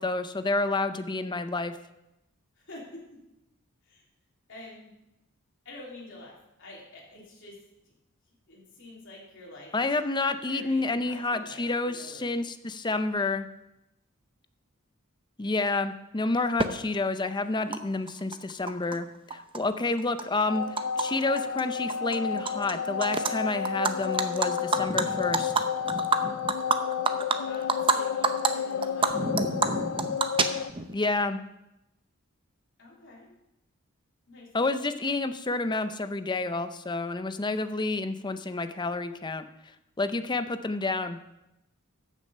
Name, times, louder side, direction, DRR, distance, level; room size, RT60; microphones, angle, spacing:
voice 1, 0.0-1.8 9.7-13.5 15.4-19.1 19.3-20.6 21.0-25.6 30.9-31.4 34.5-39.4 40.0-41.2, left 3 dB, 20° left, 10 dB, 0.6 m, -29 dB
voice 2, 2.6-3.2 3.8-4.0 4.5-4.9 5.6-7.9 8.5-9.9 10.5-12.3 27.3-29.2 32.8-33.3 34.3-34.5, left 1 dB, 60° left, -4 dB, 3.8 m, -47 dB
Animal, 16.6-16.7 17.7-17.8 18.1-19.0 19.3-21.1 21.4-21.6 21.9-22.7 23.0-23.3 23.7-28.0 28.2-28.5 28.8-30.9, right 4 dB, 25° right, 0.6 m, -27 dB
sound 1, 20.5-30.7, left 7 dB, 80° left, 0.4 m, -31 dB
14.0 x 6.6 x 5.4 m, 0.90 s
head